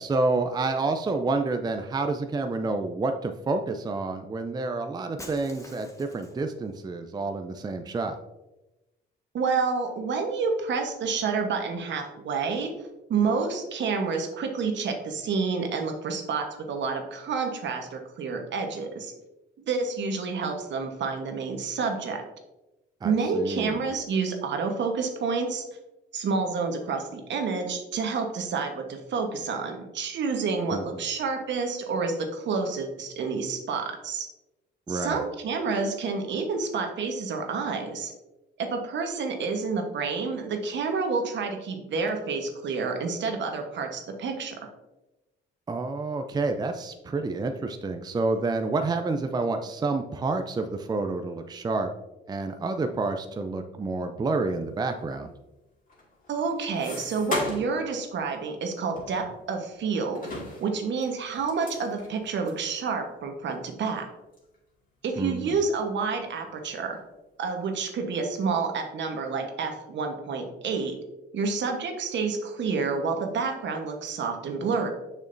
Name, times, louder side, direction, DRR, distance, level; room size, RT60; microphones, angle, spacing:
voice 1, 0.0-8.1 23.0-23.8 30.7-31.0 34.9-35.2 45.7-51.9 52.3-55.3 65.2-65.6, right 3 dB, 20° right, 6 dB, 0.4 m, -29 dB
Shatter, 5.2-6.5, left 1 dB, 15° left, 1.0 m, -45 dB
voice 2, 9.3-12.7 13.1-19.1 19.7-22.2 23.0-25.6 26.1-34.3 34.9-38.1 38.6-44.5 56.3-60.2 60.6-64.1 65.0-67.0 67.4-70.9 71.3-74.9, right 4 dB, 65° right, 4 dB, 1.1 m, -29 dB
sound 1, 55.9-57.8 58.2-58.3 59.0-59.8 60.1-62.6 63.2-63.3 63.5-63.6 64.3-64.6 65.0-65.7 66.0-66.7, left 2 dB, 45° left, 2.2 m, -37 dB
6.6 x 6.3 x 2.6 m, 1.0 s
cardioid pair, 90°, 20 cm